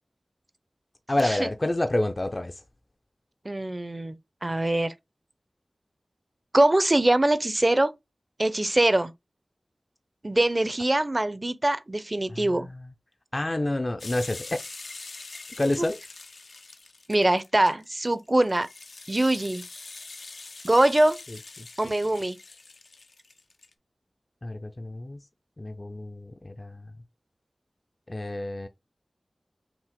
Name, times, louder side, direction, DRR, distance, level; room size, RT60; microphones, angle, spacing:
voice 1, 1.1-2.6 12.3-12.9 13.3-14.6 15.6-16.0 21.3-21.4 24.4-25.3 25.6-26.9 28.1-28.7, left 1 dB, 40° left, 0.5 m, -29 dB
voice 2, 3.4-4.9 6.5-7.9 8.4-9.1 10.2-12.7 17.1-18.7 19.1-19.6 20.6-21.2 21.8-22.4, right 1 dB, 35° right, 0.6 m, -23 dB
sound 1, 14.0-23.7, left 3 dB, 85° left, 0.6 m, -44 dB
6.0 x 2.4 x 3.5 m
cardioid pair, 45°, 0 cm